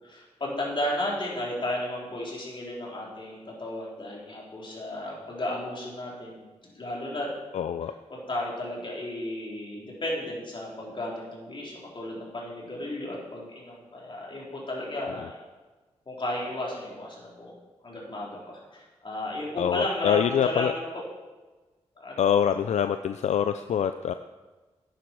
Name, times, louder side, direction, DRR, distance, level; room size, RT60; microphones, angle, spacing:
voice 1, 0.0-6.4 6.7-7.3 8.1-15.4 16.1-17.5 17.8-21.0 22.0-22.2, left 1 dB, 45° left, -4 dB, 4.1 m, -34 dB
voice 2, 7.5-7.9 19.6-20.7 22.2-24.1, left 9 dB, 80° left, 10 dB, 0.4 m, -25 dB
10.0 x 10.0 x 4.7 m, 1.2 s
cardioid pair, 55°, 12 cm